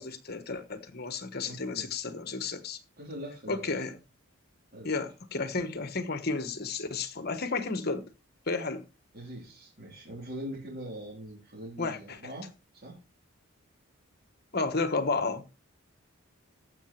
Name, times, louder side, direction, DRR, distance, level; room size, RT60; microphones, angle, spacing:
voice 1, 0.0-2.8 3.5-4.0 4.8-8.1 8.5-8.8 11.8-12.2 14.5-15.4, left 3 dB, 45° left, 1.3 m, -32 dB
voice 2, 1.5-1.9 3.0-3.8 4.7-5.0 9.1-13.0, equal, 45° right, 3.6 m, -42 dB
14.0 x 6.0 x 4.6 m
head